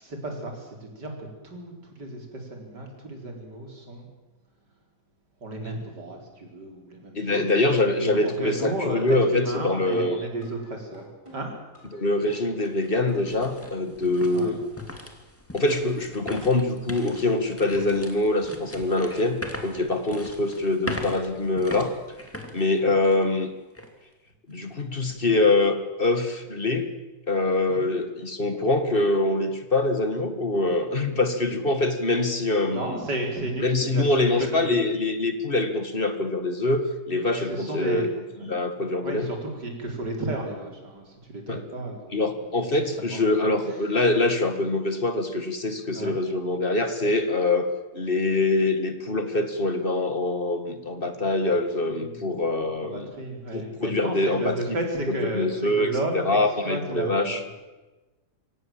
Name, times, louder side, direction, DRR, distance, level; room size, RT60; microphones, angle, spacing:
voice 1, 0.0-4.1 5.4-7.5 8.0-11.0 11.3-11.5 11.9-12.0 14.3-14.6 22.8-23.0 25.1-25.3 27.7-27.9 32.7-34.8 37.5-38.5 39.0-42.2 43.0-43.8 45.9-46.2 51.5-52.3 52.8-56.4 56.7-57.5, right 1 dB, 90° right, 2 dB, 4.9 m, -33 dB
voice 2, 7.2-10.2 11.9-14.6 15.5-21.9 22.5-23.5 24.5-26.9 27.3-33.0 33.6-38.1 38.4-39.3 41.5-41.6 42.1-47.7 47.9-53.1 53.5-54.5 55.1-55.9 56.1-57.4, left 2 dB, 35° left, 8 dB, 2.0 m, -24 dB
sound 1, 8.6-9.3 9.6-10.6 10.9-12.0 12.3-13.3 13.6-13.7, right 1 dB, 15° right, 7.3 m, -49 dB
sound 2, 11.8-11.9 12.4-23.4 23.7-23.9 24.5-24.8, left 1 dB, 10° left, 2.4 m, -40 dB
24.0 x 18.0 x 7.6 m, 1.1 s
omnidirectional pair, 1.8 m